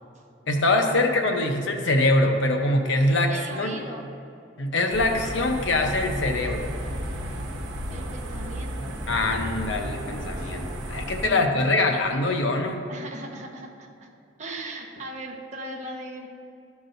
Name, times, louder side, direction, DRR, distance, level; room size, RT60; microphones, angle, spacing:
voice 1, 0.5-3.7 4.6-6.7 9.1-12.8, left 2 dB, 75° left, 4 dB, 0.7 m, -23 dB
voice 2, 3.0-4.1 7.9-9.0 11.2-11.9 12.9-14.1 14.4-16.3, right 2 dB, 40° right, 0 dB, 0.8 m, -38 dB
sound 1, 4.9-11.3, equal, 80° right, 1.0 m, -33 dB
12.0 x 6.1 x 2.6 m, 2.6 s
head